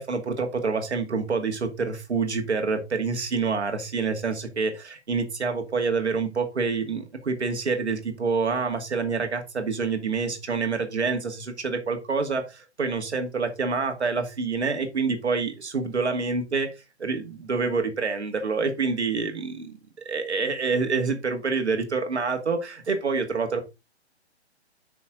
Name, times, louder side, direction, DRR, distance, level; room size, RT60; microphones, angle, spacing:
voice 1, 0.0-16.7 17.0-19.8 20.1-23.6, right 4 dB, 80° right, 2.3 m, -27 dB
8.8 x 6.3 x 3.8 m
figure-of-eight pair, 135°, 33 cm